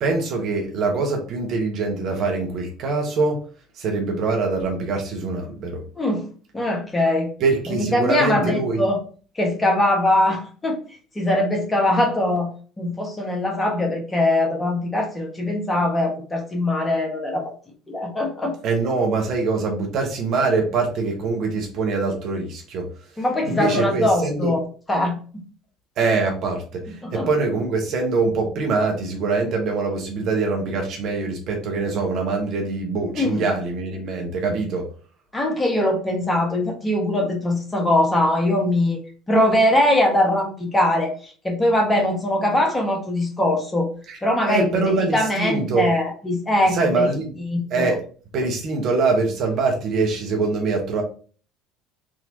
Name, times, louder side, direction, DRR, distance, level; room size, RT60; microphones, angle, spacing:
voice 1, 0.0-3.4 3.7-5.8 7.4-8.9 18.6-22.9 23.4-24.5 26.0-34.9 44.1-44.2 44.5-45.9 46.7-47.3 47.7-48.0 48.3-51.0, right 3 dB, 55° right, 2 dB, 1.1 m, -23 dB
voice 2, 6.5-7.3 7.7-9.0 9.4-10.8 11.1-17.5 17.9-18.5 23.2-24.6 24.9-25.2 27.0-27.3 33.1-33.4 35.3-39.0 39.3-43.9 44.2-47.1 47.4-47.9, left 1 dB, 20° left, 1 dB, 1.3 m, -21 dB
3.7 x 2.9 x 2.6 m, 0.39 s
hypercardioid pair, 70°, 0 cm